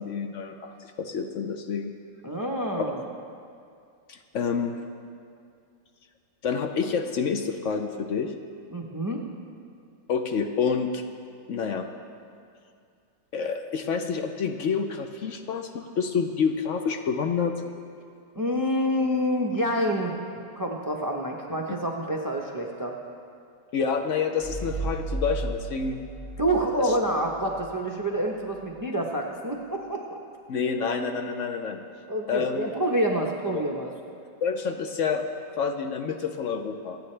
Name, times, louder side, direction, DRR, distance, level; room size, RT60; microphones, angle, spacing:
voice 1, 0.0-1.9 2.8-2.9 4.1-4.8 6.4-8.3 10.1-11.0 11.5-11.9 13.3-17.5 23.7-26.0 26.8-26.9 30.5-31.8 32.3-32.7 33.5-33.6 34.4-35.2 35.6-37.0, left 6 dB, 65° left, 6 dB, 0.7 m, -28 dB
voice 2, 2.2-3.0 8.7-9.2 18.3-20.1 20.6-23.0 26.4-30.2 32.1-33.9, equal, 25° right, 0 dB, 0.4 m, -27 dB
sound 1, 24.4-27.8, right 3 dB, 15° left, 1.2 m, -34 dB
27.0 x 9.1 x 3.3 m, 2.3 s
omnidirectional pair, 2.0 m